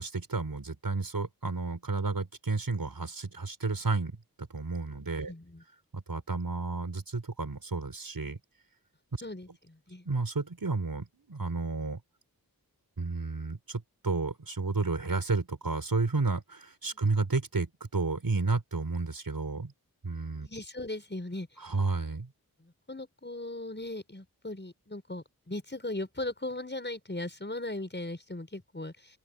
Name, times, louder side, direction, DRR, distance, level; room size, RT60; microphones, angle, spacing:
voice 1, 0.0-4.1 4.4-5.3 5.9-8.4 10.0-12.0 13.0-19.7 20.0-20.5 21.6-22.3, right 3 dB, 70° right, 6.5 m, -31 dB
voice 2, 5.0-5.6 9.2-10.1 16.9-17.0 20.4-21.5 22.6-29.2, left 2 dB, 30° left, 6.5 m, -38 dB
open air
wide cardioid pair, 70°, 36 cm